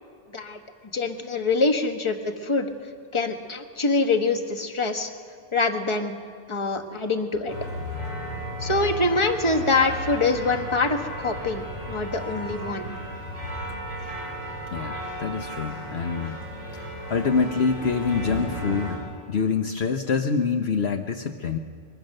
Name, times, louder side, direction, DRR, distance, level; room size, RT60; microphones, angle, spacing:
voice 1, 0.9-2.7 3.1-5.1 5.5-6.2 6.5-7.5 8.6-13.0, left 3 dB, 25° left, 5 dB, 1.4 m, -25 dB
sound 1, 7.5-19.0, equal, 90° left, 6.5 m, -34 dB
voice 2, 14.7-16.4 16.7-19.0 19.3-21.6, left 5 dB, 55° left, 4 dB, 1.1 m, -26 dB
23.5 x 22.5 x 6.6 m, 2.1 s
omnidirectional pair, 1.3 m